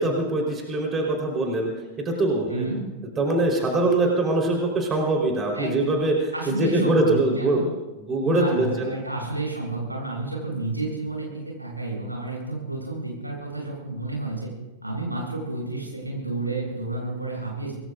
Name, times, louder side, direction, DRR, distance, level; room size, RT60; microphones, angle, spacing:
voice 1, 0.0-1.7 2.0-2.7 3.2-7.8 8.1-8.9, right 2 dB, 20° right, 0 dB, 4.2 m, -23 dB
voice 2, 2.5-2.9 5.5-5.8 6.3-7.6 8.2-14.5 14.8-17.7, right 2 dB, 85° right, -2 dB, 7.9 m, -30 dB
27.0 x 20.0 x 2.6 m, 1.1 s
figure-of-eight pair, 90°, 0 cm